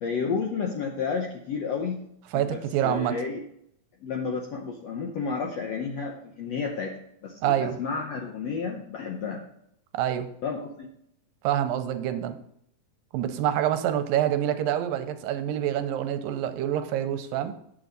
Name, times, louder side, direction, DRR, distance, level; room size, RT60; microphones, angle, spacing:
voice 1, 0.0-2.0 2.3-3.4 4.0-6.9 7.2-9.4 10.4-10.9, left 5 dB, 75° left, 1 dB, 1.5 m, -31 dB
voice 2, 2.3-3.1 7.4-7.8 9.9-10.3 11.4-12.4 13.1-17.6, right 11 dB, 85° right, 9 dB, 2.3 m, -26 dB
9.0 x 7.3 x 4.0 m, 0.72 s
omnidirectional pair, 4.1 m